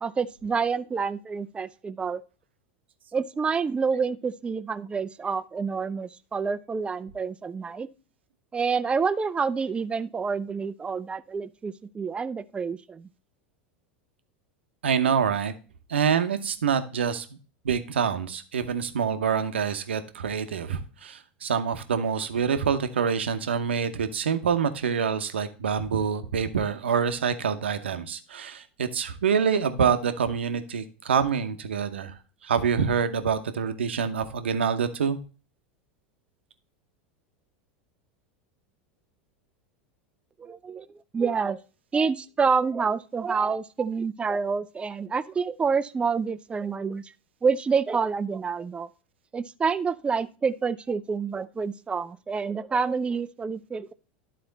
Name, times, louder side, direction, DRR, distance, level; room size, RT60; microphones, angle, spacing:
voice 1, 0.0-2.2 3.1-7.9 8.5-13.1 40.4-40.9 41.1-41.6 41.9-47.1 47.4-48.9 49.3-53.9, right 5 dB, 20° right, 0.4 m, -28 dB
voice 2, 14.8-15.5 15.9-17.3 17.6-32.1 32.4-35.2, right 6 dB, 85° right, 0.8 m, -26 dB
11.5 x 4.2 x 3.9 m
hypercardioid pair, 90°, 6 cm